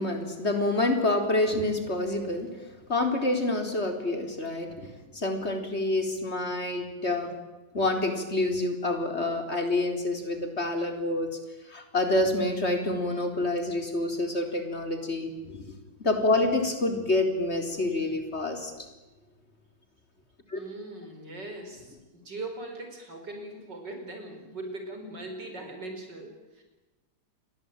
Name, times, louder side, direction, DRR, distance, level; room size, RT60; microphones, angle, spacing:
voice 1, 0.0-2.5 2.9-7.3 7.7-11.3 11.7-15.6 16.0-18.7 20.5-20.6, left 2 dB, 35° left, 5 dB, 4.4 m, -27 dB
voice 2, 20.5-26.6, right 2 dB, 90° right, 4 dB, 5.6 m, -40 dB
28.5 x 22.0 x 9.0 m, 1.1 s
omnidirectional pair, 1.8 m